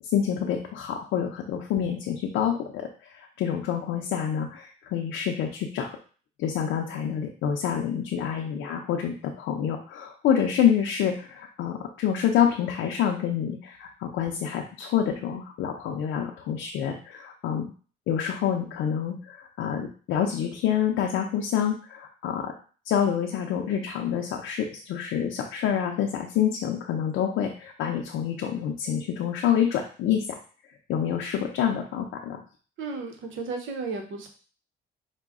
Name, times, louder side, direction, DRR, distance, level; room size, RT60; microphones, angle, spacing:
voice 1, 0.1-6.0 6.4-17.7 18.1-22.5 22.8-30.4 30.9-32.4, left 9 dB, 85° left, 2 dB, 0.6 m, -27 dB
voice 2, 32.8-34.3, right 4 dB, 75° right, 4 dB, 0.9 m, -34 dB
4.8 x 2.2 x 3.5 m, 0.40 s
cardioid pair, 90°, 20 cm